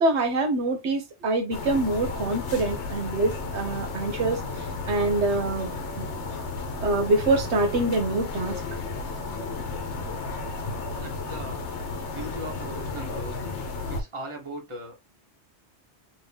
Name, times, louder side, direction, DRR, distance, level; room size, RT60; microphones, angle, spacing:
voice 1, 0.0-4.4 4.9-5.7 6.8-8.6, right 2 dB, 80° right, 1.1 m, -25 dB
sound 1, 1.5-14.0, left 3 dB, 85° left, 1.1 m, -33 dB
voice 2, 11.0-11.6 12.1-13.5 13.9-15.2, right 1 dB, 30° right, 1.0 m, -39 dB
2.8 x 2.7 x 3.3 m
omnidirectional pair, 1.1 m